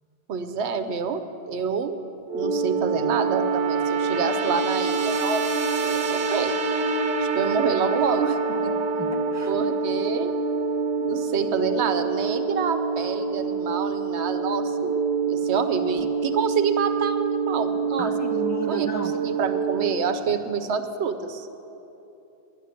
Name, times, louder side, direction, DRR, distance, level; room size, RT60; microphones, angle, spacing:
voice 1, 0.3-1.2 1.5-2.0 2.3-6.5 7.2-8.7 9.5-10.3 11.0-14.8 15.3-18.1 18.6-21.5, right 6 dB, 80° right, 9 dB, 1.0 m, -27 dB
sound 1, 2.3-19.9, right 4 dB, 55° right, 1.1 m, -26 dB
voice 2, 9.0-9.5 18.0-19.1, right 2 dB, 15° left, 3 dB, 0.8 m, -34 dB
11.0 x 10.0 x 7.6 m, 2.9 s
omnidirectional pair, 1.1 m